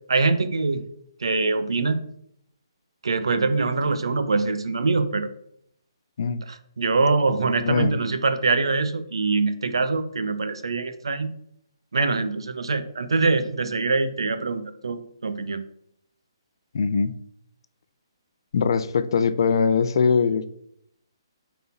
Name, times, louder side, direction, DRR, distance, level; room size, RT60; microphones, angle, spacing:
voice 1, 0.1-0.8 1.2-2.0 3.0-5.3 6.5-11.3 11.9-15.6, right 3 dB, 80° right, 10 dB, 0.9 m, -24 dB
voice 2, 7.6-8.0 16.7-17.1 18.5-20.5, left 5 dB, 60° left, 13 dB, 0.5 m, -21 dB
8.5 x 4.1 x 4.1 m, 0.71 s
hypercardioid pair, 150°, 3 cm